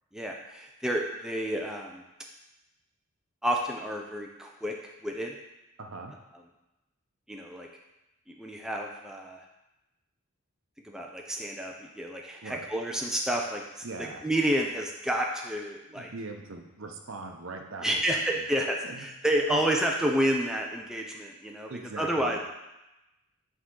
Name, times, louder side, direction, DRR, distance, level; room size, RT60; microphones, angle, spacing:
voice 1, 0.1-2.0 3.4-4.7 5.0-5.4 7.3-7.7 8.3-9.4 10.8-16.1 17.8-22.4, right 1 dB, 5° right, 0 dB, 0.4 m, -30 dB
voice 2, 5.8-6.1 12.4-12.7 13.8-14.2 15.9-18.4 18.8-19.1 19.5-19.6 21.7-22.4, right 3 dB, 70° right, 3 dB, 0.8 m, -41 dB
8.4 x 3.7 x 3.8 m, 0.96 s
head